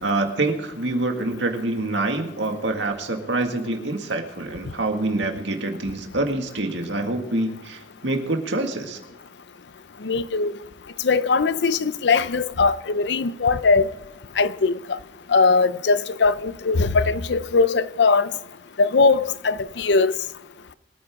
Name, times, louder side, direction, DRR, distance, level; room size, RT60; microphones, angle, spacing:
voice 1, 0.0-9.0, right 2 dB, 80° right, 2.0 m, -26 dB
voice 2, 10.0-10.5 11.0-13.9 14.4-15.0 15.3-18.3 18.8-20.1, left 4 dB, 70° left, 0.6 m, -20 dB
23.5 x 9.4 x 3.7 m
head